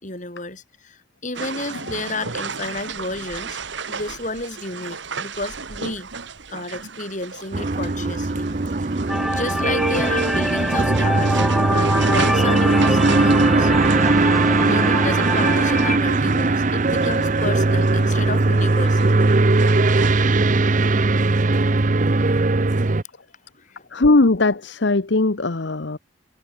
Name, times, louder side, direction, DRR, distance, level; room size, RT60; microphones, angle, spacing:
voice 1, 0.0-3.6 3.9-6.1 6.5-8.5 9.0-13.7 14.6-19.2 23.6-24.1, left 2 dB, 40° left, 6.9 m, -31 dB
sound 1, 1.3-20.2, right 5 dB, 65° right, 1.5 m, -34 dB
sound 2, 7.5-23.0, right 3 dB, 40° right, 0.7 m, -19 dB
sound 3, 9.1-16.0, equal, ahead, 0.4 m, -25 dB
voice 2, 23.9-26.0, left 2 dB, 65° left, 1.0 m, -19 dB
head